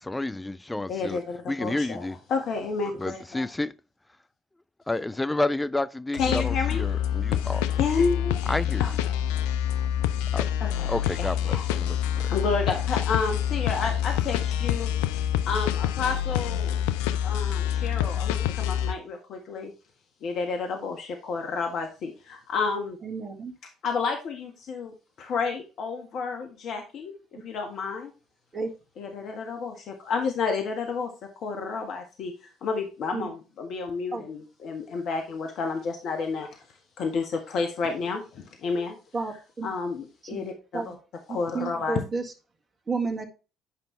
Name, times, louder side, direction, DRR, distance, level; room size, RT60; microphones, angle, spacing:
voice 1, 0.0-1.2 1.5-2.2 3.0-3.7 4.9-7.6 8.5-9.0 10.3-10.5 10.9-12.3, left 2 dB, 15° left, 0.5 m, -30 dB
voice 2, 0.9-3.5 6.2-6.8 7.8-8.4 8.8-8.9 9.3-9.4 10.6-10.9 11.2-11.7 12.3-15.2 15.4-16.8 17.2-19.7 20.2-23.0 23.8-28.1 29.0-31.1 31.4-36.6 37.0-38.9 39.6-41.0 41.3-42.0, left 4 dB, 55° left, 1.6 m, -30 dB
sound 1, 6.2-18.9, left 10 dB, 75° left, 0.5 m, -27 dB
voice 3, 23.0-23.5 28.5-28.7 33.1-33.3 34.1-34.2 39.1-39.7 40.3-40.4 40.7-41.0 41.5-42.2 42.9-43.3, right 4 dB, 30° right, 2.0 m, -31 dB
9.2 x 5.4 x 3.2 m
hypercardioid pair, 60°, 0 cm